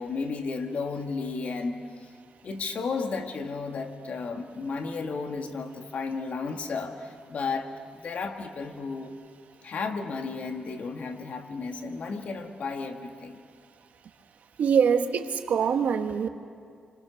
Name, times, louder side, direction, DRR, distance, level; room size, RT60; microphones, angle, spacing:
voice 1, 0.0-2.1 2.4-9.1 9.6-13.4, left 4 dB, 60° left, 4 dB, 2.0 m, -33 dB
voice 2, 14.6-16.3, right 7 dB, 80° right, 7 dB, 1.4 m, -24 dB
29.0 x 25.5 x 6.5 m, 2.2 s
cardioid pair, 100°, 3 cm